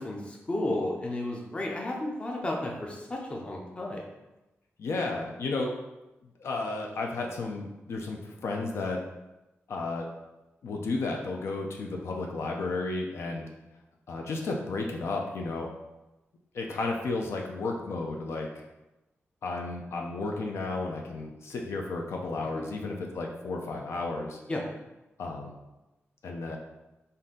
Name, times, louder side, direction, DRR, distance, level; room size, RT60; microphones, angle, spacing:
voice 1, 0.0-4.0 22.5-22.6 24.5-24.6, left 1 dB, 25° left, -1 dB, 0.6 m, -33 dB
voice 2, 4.8-5.7 6.4-9.0 9.7-10.1 10.6-13.5 14.1-15.7 16.5-18.5 19.4-24.4 25.2-25.5 26.2-26.6, left 3 dB, 75° left, 1 dB, 0.5 m, -33 dB
4.2 x 2.6 x 3.7 m, 1.0 s
wide cardioid pair, 150°, 5 cm